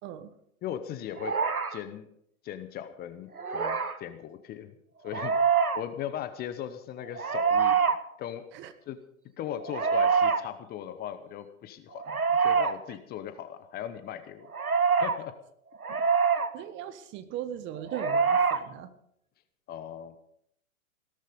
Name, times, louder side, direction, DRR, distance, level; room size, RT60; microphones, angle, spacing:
voice 1, 0.0-0.3 8.5-8.7 15.9-16.0 16.5-18.9, right 10 dB, 25° right, 11 dB, 1.3 m, -39 dB
voice 2, 0.6-1.3 1.7-2.1 2.4-4.7 5.0-5.3 5.7-7.8 8.2-8.4 8.9-9.0 9.4-14.5 15.0-15.3 16.1-16.2 19.7-20.2, left 10 dB, 20° left, 11 dB, 1.0 m, -38 dB
sound 1, 1.2-1.8 3.4-4.0 5.1-5.8 7.1-8.0 9.6-10.4 12.0-12.7 14.5-15.2 15.8-16.5 17.9-18.6, right 5 dB, 90° right, 1.3 m, -25 dB
17.0 x 13.0 x 5.3 m, 0.69 s
figure-of-eight pair, 110°, 42 cm